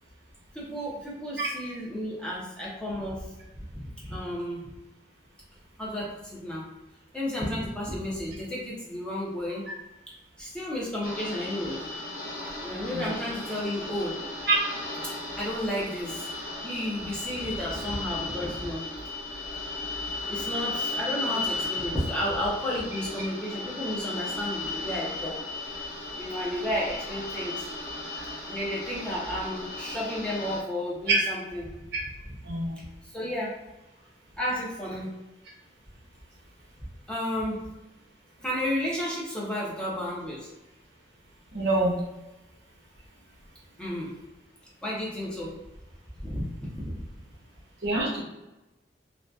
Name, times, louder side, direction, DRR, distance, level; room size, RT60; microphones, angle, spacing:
voice 1, 0.5-4.7 5.8-6.7 7.1-9.7 10.1-11.8 12.6-14.2 15.4-16.3 16.6-18.9 20.3-25.4 26.2-27.7 28.5-31.7 32.8-33.6 34.4-35.2 37.1-37.7 38.4-40.5 43.8-44.2 44.8-45.6 46.2-47.0, equal, 5° left, -6 dB, 0.5 m, -32 dB
sound 1, 11.0-30.6, left 2 dB, 45° left, 0.7 m, -36 dB
voice 2, 32.4-32.8 41.5-42.0 47.8-48.2, right 2 dB, 65° right, -3 dB, 0.7 m, -25 dB
2.6 x 2.1 x 2.2 m, 0.99 s
head